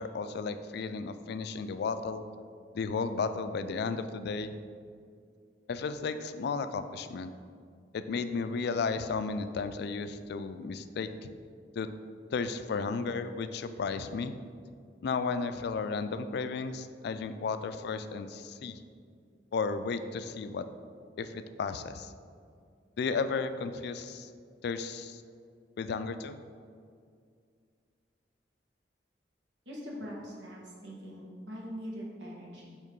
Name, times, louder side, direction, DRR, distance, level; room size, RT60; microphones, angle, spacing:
voice 1, 0.0-2.2 2.7-4.5 5.7-7.3 7.9-11.3 11.7-11.9 12.3-14.3 15.0-18.8 19.5-20.6 21.2-22.1 23.0-24.3 24.6-25.2 25.8-26.4, left 4 dB, 65° left, 10 dB, 0.3 m, -34 dB
voice 2, 29.6-30.6 30.8-32.8, equal, 85° right, -3 dB, 1.4 m, -42 dB
6.6 x 3.1 x 5.1 m, 2.2 s
head